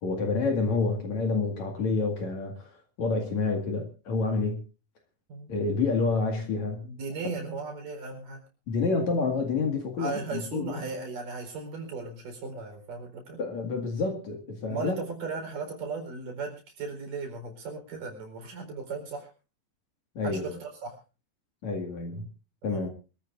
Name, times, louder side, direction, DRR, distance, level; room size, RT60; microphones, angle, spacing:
voice 1, 0.0-2.7 3.0-4.6 5.5-6.8 8.7-10.9 13.4-15.0 20.1-20.6 21.6-22.3 22.6-22.9, left 4 dB, 50° left, 3 dB, 3.0 m, -28 dB
voice 2, 6.8-8.4 10.0-13.4 14.7-19.3 20.2-20.9 22.6-22.9, right 4 dB, 60° right, 3 dB, 5.8 m, -36 dB
26.0 x 13.5 x 2.6 m, 0.32 s
omnidirectional pair, 4.4 m